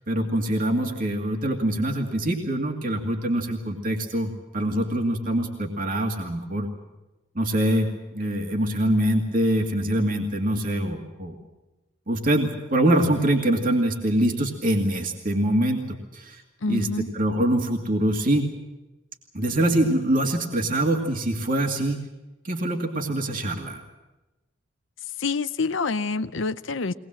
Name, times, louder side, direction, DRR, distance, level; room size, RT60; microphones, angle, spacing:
voice 1, 0.1-6.7 7.3-7.9 8.1-11.4 12.1-16.4 16.7-16.9 17.1-18.5 19.3-22.1 22.4-23.8, right 1 dB, 45° right, 2 dB, 2.3 m, -24 dB
voice 2, 16.6-17.1 25.2-26.9, left 4 dB, 75° left, 11 dB, 0.7 m, -27 dB
23.0 x 19.5 x 7.6 m, 1.1 s
head